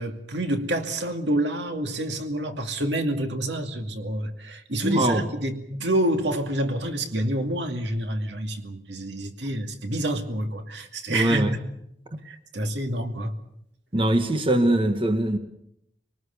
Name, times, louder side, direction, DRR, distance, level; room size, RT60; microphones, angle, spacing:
voice 1, 0.0-11.6 12.2-13.3, right 1 dB, 75° right, 5 dB, 2.4 m, -28 dB
voice 2, 4.8-5.2 11.1-11.5 13.9-15.4, right 1 dB, 30° right, 7 dB, 1.6 m, -22 dB
25.5 x 19.5 x 7.0 m, 0.76 s
head